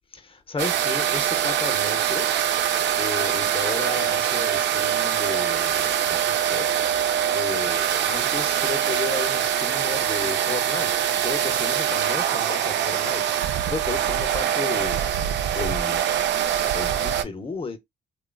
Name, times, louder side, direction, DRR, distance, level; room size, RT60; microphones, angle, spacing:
voice 1, 0.1-2.3 3.0-6.7 7.3-10.9 11.2-15.3 15.5-16.0 16.7-17.8, left 4 dB, 25° left, 0.6 m, -33 dB
sound 1, 0.6-17.2, right 9 dB, 65° right, 0.4 m, -23 dB
2.9 x 2.4 x 2.2 m
cardioid pair, 90°, 20 cm